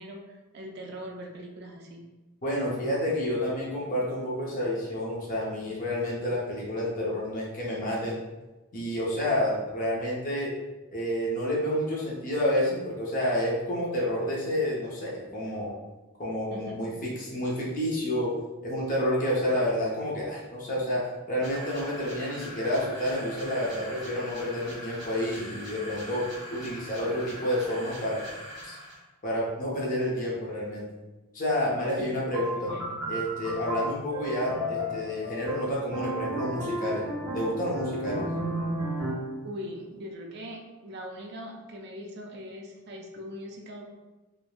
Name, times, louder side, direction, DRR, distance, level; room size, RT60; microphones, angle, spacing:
voice 1, 0.0-2.0 16.5-16.9 32.0-32.2 32.6-32.9 39.4-44.0, equal, 45° right, 1 dB, 0.3 m, -41 dB
voice 2, 2.4-8.2 8.7-10.5 10.9-15.7 16.2-18.3 18.6-26.2 26.5-28.2 28.6-28.8 29.2-30.9 31.3-32.7 33.1-37.1 37.3-38.2, left 1 dB, 35° left, -5 dB, 0.5 m, -29 dB
sound 1, 21.4-29.0, equal, 20° right, 1.0 m, -42 dB
sound 2, 32.3-39.4, right 1 dB, 75° right, 0.9 m, -33 dB
3.0 x 2.0 x 2.2 m, 1.1 s
head